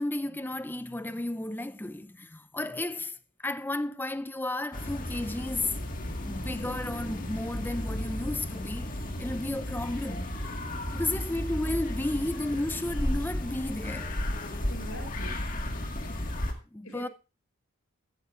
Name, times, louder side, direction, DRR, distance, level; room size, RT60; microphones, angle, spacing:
voice 1, 0.0-5.8 6.2-10.3 10.9-14.2 16.7-17.1, left 2 dB, 10° left, 0.5 m, -33 dB
sound 1, 4.7-16.5, left 1 dB, 40° left, 1.8 m, -34 dB
voice 2, 14.7-15.4 16.8-17.1, equal, 80° left, 5.2 m, -43 dB
14.0 x 13.5 x 2.5 m
head